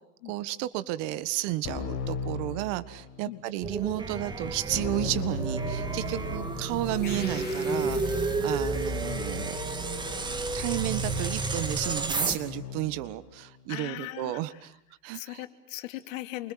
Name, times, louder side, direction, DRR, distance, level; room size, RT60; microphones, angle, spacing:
voice 1, 0.2-9.8 10.3-14.7 15.0-15.4, right 16 dB, 45° right, 14 dB, 1.7 m, -33 dB
Keyboard (musical), 1.6-3.3 4.7-13.1, left 3 dB, 35° left, 7.1 m, -38 dB
sound 1, 3.6-12.4, right 3 dB, 10° right, 2.3 m, -31 dB
sound 2, 7.0-8.9, left 6 dB, 20° left, 4.1 m, -45 dB
voice 2, 13.7-14.7 15.1-16.5, left 16 dB, 60° left, 8 dB, 3.0 m, -39 dB
28.5 x 25.5 x 7.7 m, 0.81 s
hypercardioid pair, 125°, 45 cm